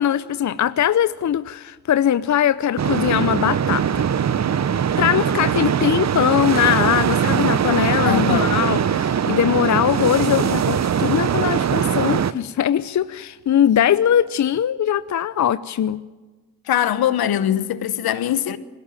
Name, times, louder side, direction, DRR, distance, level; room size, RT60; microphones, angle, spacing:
voice 1, 0.0-4.1 5.0-16.0, left 10 dB, 50° left, 0.7 m, -21 dB
sound 1, 2.8-12.3, right 8 dB, 45° right, 0.8 m, -21 dB
voice 2, 8.0-8.6 16.7-18.6, left 10 dB, 70° left, 1.1 m, -21 dB
21.0 x 18.0 x 9.0 m
hypercardioid pair, 40°, 38 cm